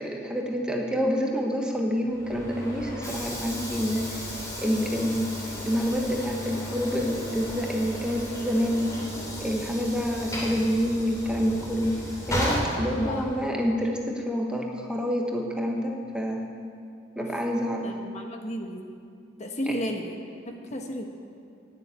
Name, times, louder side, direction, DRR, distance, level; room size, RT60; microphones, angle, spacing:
voice 1, 0.0-4.3 4.6-5.3 5.6-8.9 9.4-12.0 12.3-16.5 17.1-17.9 19.7-19.8, equal, 5° right, 0 dB, 1.1 m, -27 dB
Train / Sliding door, 2.1-13.5, equal, 15° left, 3.1 m, -34 dB
voice 2, 17.8-18.8 19.4-20.1 20.4-21.0, equal, 35° left, 3 dB, 1.3 m, -33 dB
12.0 x 10.0 x 9.6 m, 2.4 s
head